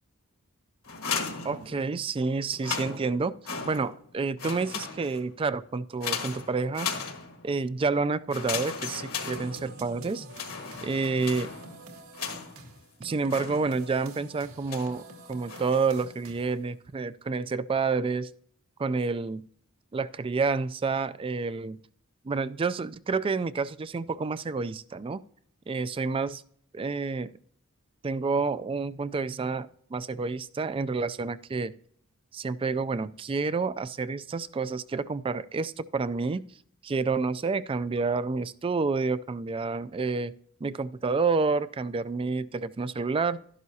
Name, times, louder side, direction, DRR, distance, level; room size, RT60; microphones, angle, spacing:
sound 1, 0.8-2.1 2.5-4.1 4.4-5.3 6.0-7.6 8.3-9.9 10.3-12.7 13.3-14.0 14.7-15.0 15.5-16.0, left 6 dB, 70° left, 1.7 m, -36 dB
voice 1, 1.4-3.4 3.6-6.9 7.4-10.3 10.8-11.5 13.0-15.0 15.3-18.3 18.8-19.5 19.9-21.8 22.2-25.2 25.7-26.4 26.7-27.3 28.0-31.7 32.3-36.5 36.8-40.3 40.6-43.4, right 4 dB, 25° right, 15 dB, 0.3 m, -29 dB
sound 2, 9.3-16.7, right 2 dB, 80° right, 2.0 m, -48 dB
12.0 x 11.0 x 2.8 m, 0.63 s
head